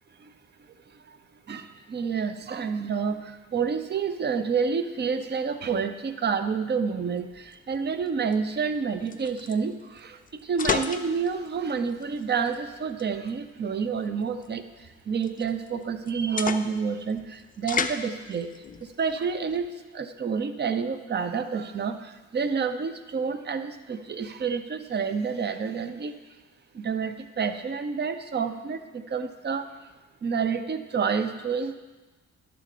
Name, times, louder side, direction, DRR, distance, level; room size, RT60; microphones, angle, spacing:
voice 1, 1.5-14.6 15.1-18.5 18.8-19.7 19.9-26.1 26.7-29.7 30.2-31.7, right 5 dB, 35° right, 9 dB, 0.7 m, -29 dB
sound 1, 7.2-19.7, left 6 dB, 30° left, 0.5 m, -36 dB
11.5 x 4.0 x 6.7 m, 1.2 s
cardioid pair, 90°, 30 cm